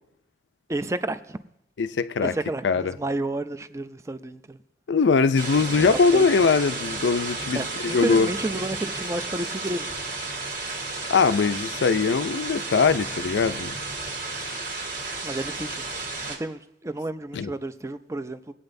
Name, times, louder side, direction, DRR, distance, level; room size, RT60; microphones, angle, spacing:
voice 1, 0.7-1.4 2.2-4.6 6.1-6.3 7.5-10.0 15.2-15.8 16.3-18.5, right 2 dB, 15° right, 0.4 m, -31 dB
voice 2, 1.8-2.3 2.6-3.0 4.9-8.3 11.1-13.8 17.3-17.5, left 5 dB, 90° left, 0.5 m, -21 dB
sound 1, 5.4-16.4, right 3 dB, 50° right, 1.7 m, -32 dB
21.0 x 8.6 x 2.6 m
head